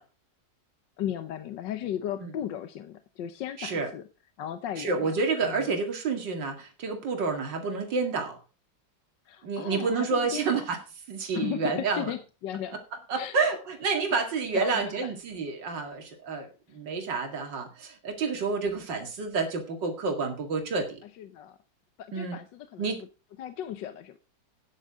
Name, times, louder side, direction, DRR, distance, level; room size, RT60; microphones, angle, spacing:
voice 1, 1.0-4.0 4.4-5.1 5.4-5.7 9.2-10.6 11.3-12.8 13.2-13.4 14.5-15.2 16.7-16.8 21.0-21.6 22.0-23.0 23.4-24.2, left 10 dB, 80° left, 11 dB, 1.5 m, -36 dB
voice 2, 3.6-3.9 4.8-8.4 9.4-10.8 11.1-12.1 13.1-21.0 22.1-22.4 22.8-23.0, right 4 dB, 75° right, 4 dB, 2.8 m, -29 dB
13.0 x 9.9 x 3.6 m, 0.32 s
omnidirectional pair, 2.0 m